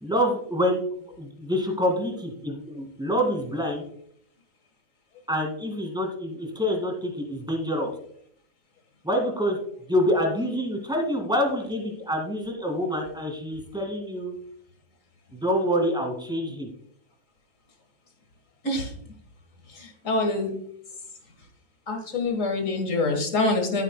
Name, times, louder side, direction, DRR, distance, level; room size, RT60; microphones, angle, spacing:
voice 1, 0.0-0.8 1.2-3.8 5.3-7.9 9.0-9.6 9.9-14.3 15.3-16.7, equal, 5° right, 3 dB, 1.9 m, -26 dB
voice 2, 19.7-20.6 21.9-23.8, left 2 dB, 70° left, 5 dB, 2.0 m, -26 dB
13.5 x 8.3 x 2.2 m, 0.65 s
omnidirectional pair, 1.4 m